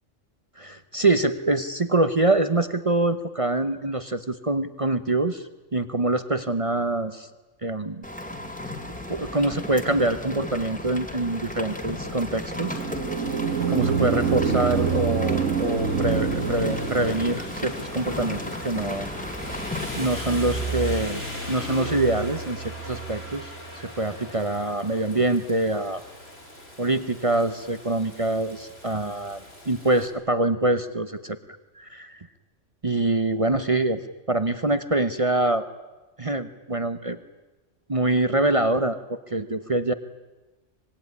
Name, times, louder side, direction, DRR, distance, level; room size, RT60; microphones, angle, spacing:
voice 1, 0.6-7.3 7.6-8.0 9.1-12.8 13.7-19.1 19.9-21.2 21.5-26.0 26.8-29.4 29.7-31.4 31.8-32.2 32.8-34.0 34.3-35.6 36.2-37.2 37.9-39.9, right 2 dB, 30° right, 11 dB, 1.0 m, -25 dB
Rain, 8.0-21.1, left 1 dB, 5° left, 2.4 m, -35 dB
sound 1, 12.5-17.5, right 6 dB, 85° right, 1.8 m, -26 dB
Rain 2, 13.0-30.1, right 1 dB, 55° left, 5.9 m, -38 dB
25.5 x 21.0 x 9.7 m, 1.1 s
omnidirectional pair, 1.3 m